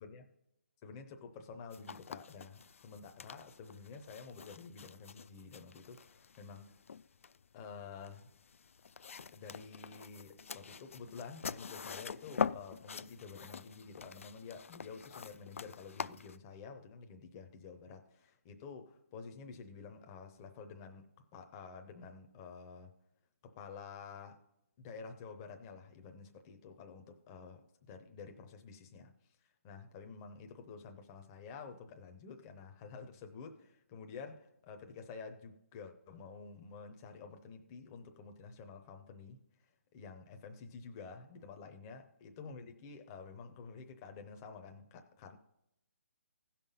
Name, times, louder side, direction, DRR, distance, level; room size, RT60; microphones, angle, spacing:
voice 1, 0.8-6.7 7.5-8.3 9.3-22.9 23.4-24.4 24.8-29.1 29.6-45.4, left 5 dB, 15° left, 0.7 m, -50 dB
sound 1, 1.7-16.4, left 6 dB, 65° left, 0.4 m, -44 dB
15.0 x 5.8 x 5.4 m
hypercardioid pair, 170°, 8 cm